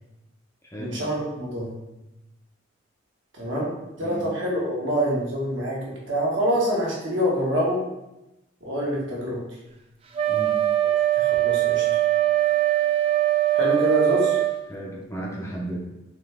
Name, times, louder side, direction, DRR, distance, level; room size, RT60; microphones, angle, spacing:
voice 1, 0.8-1.7 3.4-3.7 4.0-7.8 8.6-9.4 11.2-11.8 13.5-14.4, equal, 70° right, -5 dB, 1.4 m, -26 dB
voice 2, 4.0-4.3 10.3-10.6 14.7-15.8, right 1 dB, 15° left, -3 dB, 0.6 m, -34 dB
Wind instrument woodwind instrument, 10.1-14.6, right 13 dB, 30° right, 0.4 m, -21 dB
4.1 x 3.5 x 3.5 m, 0.93 s
head